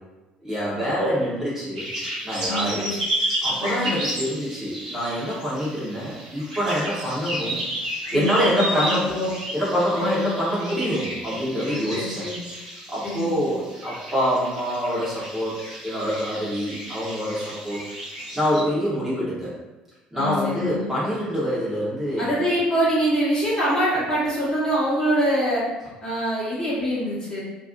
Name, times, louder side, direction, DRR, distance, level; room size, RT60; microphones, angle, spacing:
voice 1, 0.4-1.9 2.2-2.9 3.4-7.6 8.1-9.1 9.5-12.2 12.9-15.5 15.8-17.8 18.3-19.5 20.1-22.4, equal, 10° right, -9 dB, 1.2 m, -25 dB
sound 1, 1.8-18.6, right 1 dB, 75° right, 0.5 m, -32 dB
voice 2, 2.4-2.9 3.6-3.9 8.1-9.3 10.0-10.3 11.7-12.4 13.0-13.3 20.1-20.8 22.2-25.6 26.0-27.4, equal, 20° left, -9 dB, 1.2 m, -24 dB
2.6 x 2.6 x 2.5 m, 1.1 s
figure-of-eight pair, 55°, 4 cm